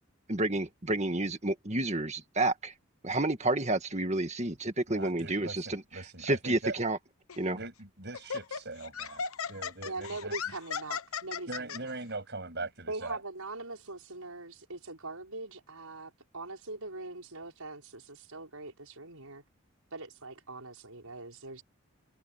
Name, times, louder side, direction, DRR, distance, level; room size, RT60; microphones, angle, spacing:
voice 1, 0.3-2.7 3.0-5.8 6.2-7.0 7.4-7.6, right 2 dB, 30° right, 1.9 m, -30 dB
voice 2, 4.9-6.8 7.5-9.2 9.5-10.4 11.5-13.2, right 3 dB, 50° right, 7.8 m, -41 dB
Laughter, 7.3-7.5 8.1-11.8, left 6 dB, 80° left, 1.1 m, -37 dB
voice 3, 9.9-11.8 12.9-19.4 19.9-21.6, right 2 dB, 85° right, 6.0 m, -42 dB
head